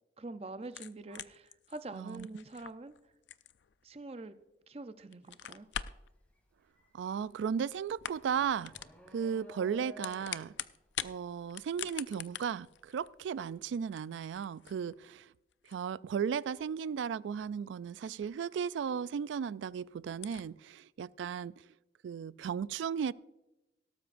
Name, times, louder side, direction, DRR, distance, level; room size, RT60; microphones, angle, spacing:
voice 1, 0.2-2.9 3.8-4.4 4.7-5.7, right 2 dB, 35° right, 0.5 m, -45 dB
sound 1, 0.6-4.7 5.0-6.1 7.2-7.6 7.9-8.4 8.6-9.0 9.8-11.2 11.5-18.5 18.9-19.0 19.4-19.5 19.7-19.8 20.1-20.5, left 10 dB, 80° left, 0.4 m, -44 dB
voice 2, 1.9-2.3 6.9-8.7 9.1-10.5 11.0-15.3 15.7-21.7 22.0-23.1, right 7 dB, 90° right, 0.3 m, -35 dB
sound 2, 5.6-5.8 6.2-13.2, left 1 dB, 10° left, 2.0 m, -56 dB
17.5 x 12.5 x 2.6 m
head